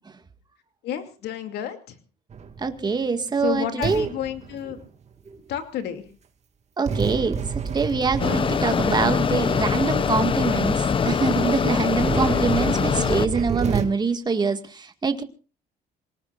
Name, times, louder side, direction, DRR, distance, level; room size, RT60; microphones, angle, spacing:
voice 1, 0.8-2.0 3.4-4.8 5.5-6.0, left 10 dB, 75° left, 7 dB, 2.6 m, -30 dB
sound 1, 2.3-2.9 3.8-5.1 6.9-9.0 9.8-9.9 10.4-10.5 10.7-11.0 11.8-13.9, right 6 dB, 40° right, 2.2 m, -30 dB
voice 2, 2.6-4.1 5.3-5.4 6.8-7.4 7.7-15.2, right 4 dB, 25° right, 8 dB, 1.9 m, -24 dB
Mechanisms, 8.2-13.3, left 6 dB, 30° left, 0.7 m, -23 dB
27.0 x 18.5 x 2.5 m, 0.35 s
cardioid pair, 110°, 17 cm